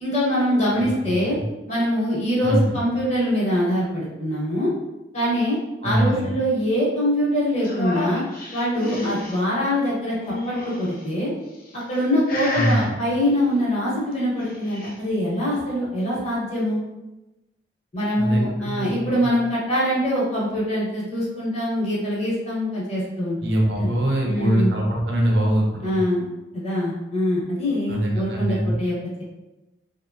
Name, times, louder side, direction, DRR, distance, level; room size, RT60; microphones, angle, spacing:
voice 1, 0.0-1.4 1.7-4.7 5.1-5.6 5.8-8.2 8.5-11.3 11.9-16.8 17.9-23.4 23.8-23.9 24.2-24.7 25.8-26.2 26.5-29.2, equal, 40° left, -6 dB, 0.9 m, -23 dB
voice 2, 1.0-1.4 2.4-2.8 5.8-6.3 12.5-12.9 18.2-19.3 23.4-26.0 27.9-28.8, right 1 dB, 75° right, -1 dB, 0.6 m, -23 dB
sound 1, 7.6-9.4 10.2-11.0 11.7-12.0 12.3-12.9 14.2-15.0, left 1 dB, 55° left, 0.5 m, -31 dB
2.9 x 2.1 x 2.5 m, 1.0 s
head